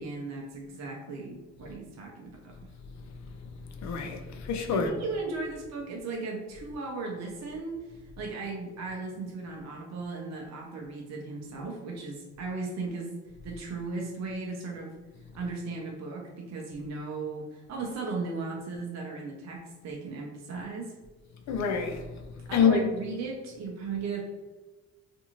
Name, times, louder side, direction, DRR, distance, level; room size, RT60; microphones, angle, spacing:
voice 1, 0.0-2.7 4.7-13.1 13.4-14.9 15.3-21.0 22.5-24.2, right 3 dB, 60° right, 0.6 m, -36 dB
voice 2, 3.4-4.9 21.5-22.2 22.5-22.8, left 6 dB, 65° left, 0.5 m, -27 dB
2.5 x 2.5 x 2.9 m
cardioid pair, 90°, 30 cm